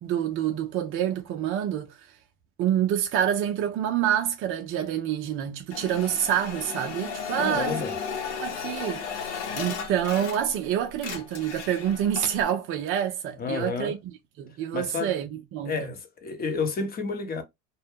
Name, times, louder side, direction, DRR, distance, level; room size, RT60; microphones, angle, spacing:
voice 1, 0.0-2.2 2.6-7.8 8.3-14.0 14.4-15.9, right 10 dB, 40° right, 0.4 m, -27 dB
sound 1, 5.7-10.7 10.9-12.4, left 6 dB, 75° left, 0.8 m, -35 dB
voice 2, 7.4-7.9 13.4-13.9 14.7-15.1 15.7-17.4, left 4 dB, 25° left, 0.7 m, -30 dB
2.2 x 2.0 x 3.2 m
hypercardioid pair, 95°, 34 cm